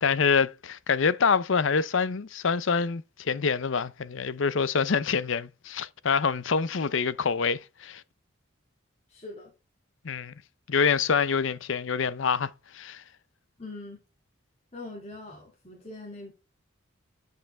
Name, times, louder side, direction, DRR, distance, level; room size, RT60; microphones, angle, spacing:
voice 1, 0.0-8.0 10.0-10.3 10.7-13.0, left 5 dB, 70° left, 0.6 m, -26 dB
voice 2, 9.1-9.5 13.6-14.0 14.7-16.3, left 2 dB, 30° left, 2.3 m, -42 dB
8.8 x 5.7 x 3.3 m
head